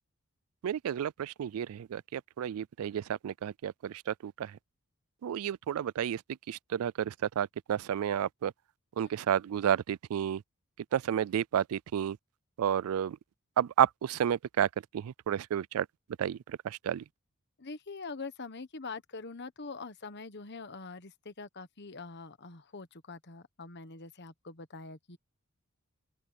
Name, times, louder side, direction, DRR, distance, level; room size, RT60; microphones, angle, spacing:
voice 1, 0.6-4.5 5.2-6.2 6.5-8.5 9.0-10.4 10.9-12.2 12.6-13.2 13.6-14.7 14.9-15.9 16.2-17.0, right 9 dB, 75° right, 0.3 m, -31 dB
voice 2, 17.6-25.2, left 4 dB, 50° left, 1.3 m, -44 dB
open air
head